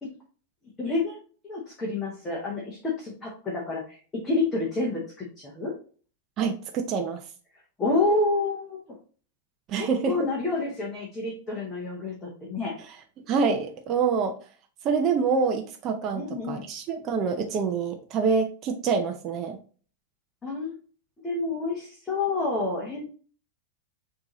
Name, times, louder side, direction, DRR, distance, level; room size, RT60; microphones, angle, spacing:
voice 1, 0.8-1.2 1.4-4.0 4.2-5.7 7.8-9.0 9.8-12.8 16.1-16.6 20.4-20.7 21.2-23.0, left 3 dB, 10° left, -3 dB, 0.8 m, -28 dB
voice 2, 6.4-7.2 9.7-10.1 13.3-14.3 14.8-19.6, right 5 dB, 25° right, 4 dB, 0.4 m, -26 dB
6.2 x 2.7 x 3.0 m, 0.41 s
supercardioid pair, 180°, 0 cm